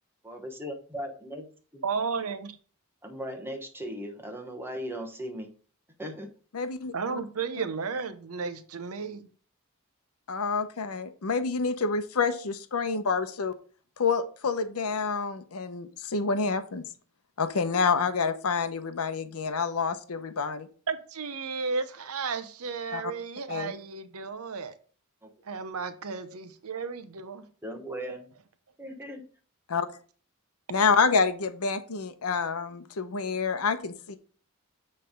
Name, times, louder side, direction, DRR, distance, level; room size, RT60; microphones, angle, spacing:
voice 1, 0.2-1.4 1.7-1.8 3.0-5.5 6.0-6.3 25.2-25.3 27.6-28.3 28.8-29.2, equal, 10° right, 1.1 m, -38 dB
voice 2, 1.8-2.6 6.9-9.3 20.9-24.7 25.5-27.5, right 5 dB, 75° right, 0.7 m, -33 dB
voice 3, 6.5-7.2 10.3-13.5 14.0-16.8 17.4-20.7 22.9-23.1 23.5-23.7 29.7-29.9 30.7-34.2, left 5 dB, 80° left, 0.7 m, -28 dB
7.8 x 3.3 x 5.1 m
head